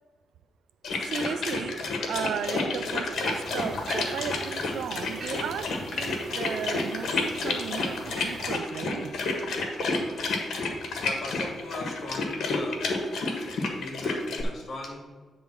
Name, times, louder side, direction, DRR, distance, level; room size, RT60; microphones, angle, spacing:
sound 1, 0.8-14.4, left 3 dB, 75° left, 1.4 m, -30 dB
voice 1, 1.1-1.8 2.1-9.1, right 8 dB, 85° right, 13 dB, 0.4 m, -35 dB
sound 2, 3.1-8.5, right 2 dB, 50° right, 1.4 m, -42 dB
voice 2, 11.0-12.8 13.4-13.5 13.8-15.0, left 2 dB, 45° left, 0 dB, 2.2 m, -38 dB
9.2 x 3.5 x 6.2 m, 1.5 s
cardioid pair, 125°, 0 cm